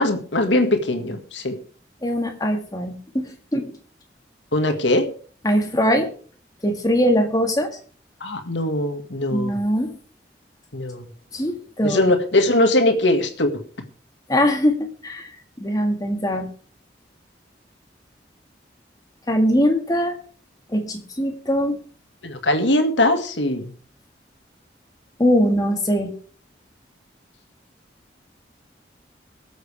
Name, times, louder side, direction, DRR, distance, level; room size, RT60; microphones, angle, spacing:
voice 1, 0.0-1.6 4.5-5.1 8.2-9.5 10.7-11.0 11.8-13.6 22.2-23.7, left 1 dB, 90° left, 6 dB, 1.9 m, -21 dB
voice 2, 2.0-3.7 5.4-6.1 6.6-7.7 9.3-10.0 11.3-12.1 14.3-16.5 19.3-20.2 20.7-21.8 25.2-26.1, equal, 20° left, 4 dB, 1.8 m, -21 dB
23.5 x 7.8 x 3.4 m, 0.43 s
head